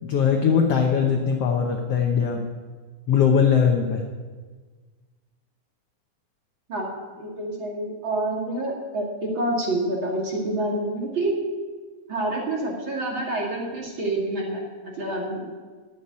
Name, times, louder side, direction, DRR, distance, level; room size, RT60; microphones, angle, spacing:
voice 1, 0.0-2.5 3.1-4.0, left 7 dB, 70° left, 3 dB, 1.5 m, -20 dB
voice 2, 7.2-11.4 12.1-15.6, right 1 dB, 40° right, -2 dB, 2.7 m, -27 dB
12.5 x 7.3 x 9.6 m, 1.5 s
omnidirectional pair, 3.9 m